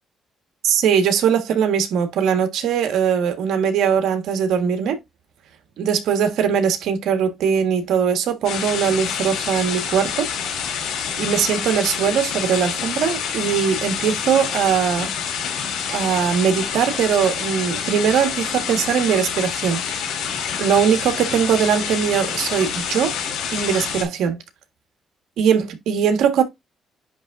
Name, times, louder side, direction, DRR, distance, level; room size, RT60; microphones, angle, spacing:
voice 1, 0.6-5.0 5.8-10.3 11.2-15.1 15.9-19.8 20.6-23.2 23.5-24.4 25.4-26.4, right 7 dB, 80° right, 1.6 m, -20 dB
sound 1, 8.4-24.0, left 7 dB, 90° left, 2.9 m, -27 dB
10.0 x 3.5 x 2.6 m
cardioid pair, 90°, 0 cm